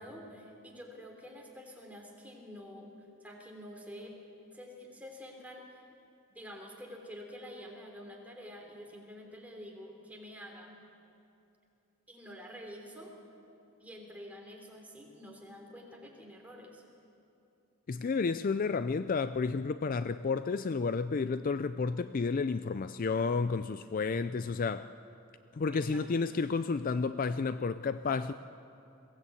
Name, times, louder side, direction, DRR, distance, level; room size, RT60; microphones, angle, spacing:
voice 1, 0.0-2.9 3.2-4.1 4.5-5.8 6.3-10.7 12.1-13.2 13.8-16.8 25.7-26.3, equal, 5° right, 0 dB, 3.2 m, -48 dB
voice 2, 17.9-24.9 25.5-28.3, left 4 dB, 40° left, 12 dB, 0.4 m, -31 dB
22.0 x 17.0 x 8.4 m, 2.8 s
head